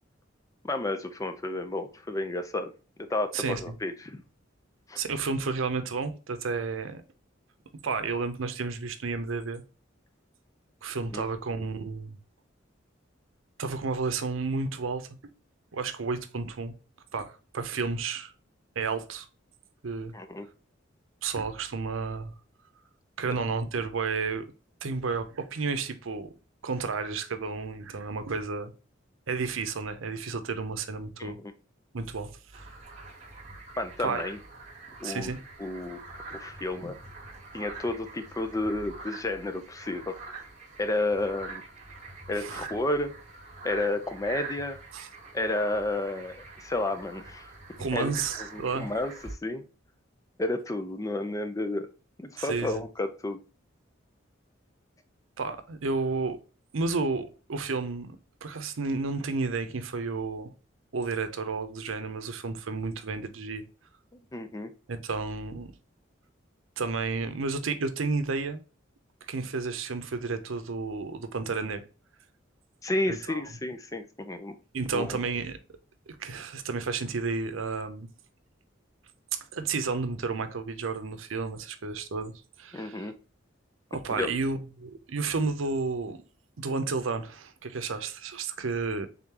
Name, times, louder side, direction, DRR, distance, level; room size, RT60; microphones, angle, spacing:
voice 1, 0.6-2.7 3.0-4.2 4.9-5.0 11.1-11.2 20.1-20.5 31.2-31.5 33.8-34.4 35.0-35.3 35.6-36.0 36.3-37.0 37.5-40.2 40.8-41.6 42.3-43.2 43.6-44.8 45.3-47.5 47.9-48.1 48.4-49.7 50.4-51.9 52.2-53.4 64.3-64.7 72.8-74.6 74.9-75.2 82.7-83.1 84.1-84.3, left 2 dB, 15° left, 0.5 m, -31 dB
voice 2, 3.3-3.7 5.0-7.0 7.8-9.6 10.8-12.2 13.6-15.1 15.7-16.7 17.1-18.3 18.8-19.3 19.8-20.1 21.2-22.3 23.2-24.5 24.8-26.3 26.6-28.7 29.3-31.4 31.9-32.7 34.0-34.2 35.0-35.4 42.4-42.7 44.9-45.1 47.8-48.9 52.4-52.8 55.4-56.4 56.7-60.5 60.9-63.6 64.9-65.7 66.8-68.6 69.3-71.8 73.1-73.4 74.7-75.6 76.1-78.1 79.5-83.1 83.9-86.2 86.6-89.1, right 4 dB, 90° right, 0.6 m, -32 dB
sound 1, 32.5-49.3, right 3 dB, 35° right, 1.3 m, -44 dB
3.7 x 3.7 x 2.8 m
head